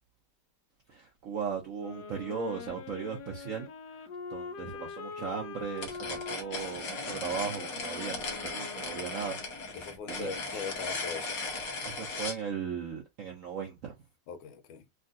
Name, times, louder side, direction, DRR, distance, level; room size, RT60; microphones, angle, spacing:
voice 1, 0.9-10.3 11.9-13.9, right 6 dB, 70° right, 0.7 m, -38 dB
sound 1, 1.7-9.6, left 5 dB, 70° left, 1.1 m, -44 dB
sound 2, 5.8-12.4, left 3 dB, 55° left, 1.3 m, -37 dB
voice 2, 9.8-11.4 14.3-14.8, left 6 dB, 85° left, 1.4 m, -40 dB
3.6 x 2.4 x 2.5 m
omnidirectional pair, 2.2 m